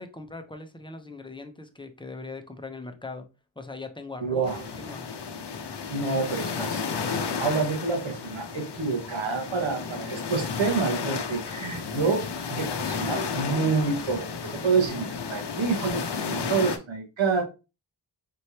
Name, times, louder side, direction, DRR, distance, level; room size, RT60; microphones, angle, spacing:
voice 1, 0.0-3.3 3.6-5.2 10.8-11.0, left 3 dB, 10° left, 0.6 m, -40 dB
voice 2, 4.2-4.6 5.9-17.4, right 4 dB, 80° right, 1.3 m, -28 dB
sound 1, 4.5-16.8, left 5 dB, 60° left, 0.7 m, -33 dB
4.5 x 3.1 x 2.8 m
wide cardioid pair, 85°, 46 cm